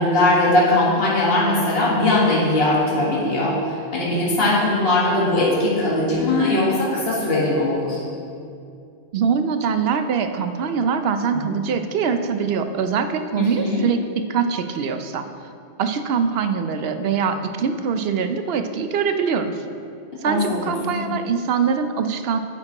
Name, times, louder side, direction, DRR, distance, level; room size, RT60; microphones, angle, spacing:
voice 1, 0.0-8.0 11.3-11.4 13.4-13.8 20.3-21.1, left 2 dB, 60° left, -6 dB, 1.8 m, -20 dB
voice 2, 9.1-14.0 14.3-15.2 15.8-19.5 20.2-22.4, right 6 dB, 65° right, 8 dB, 0.8 m, -23 dB
10.5 x 8.7 x 2.9 m, 2.4 s
omnidirectional pair, 1.2 m